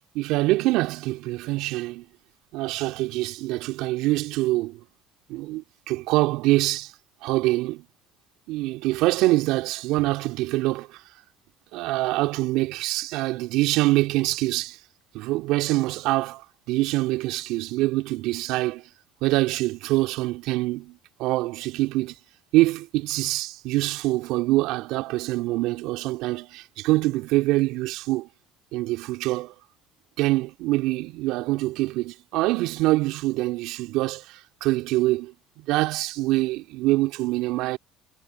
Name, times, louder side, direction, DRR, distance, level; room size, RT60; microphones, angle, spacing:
voice 1, 0.1-2.0 2.5-4.8 5.3-6.9 7.2-7.9 8.5-11.0 11.7-14.8 15.1-18.8 19.2-22.2 22.5-28.3 28.7-29.5 30.2-37.8, right 19 dB, 70° right, 2.5 m, -25 dB
hypercardioid pair, 70°, 0 cm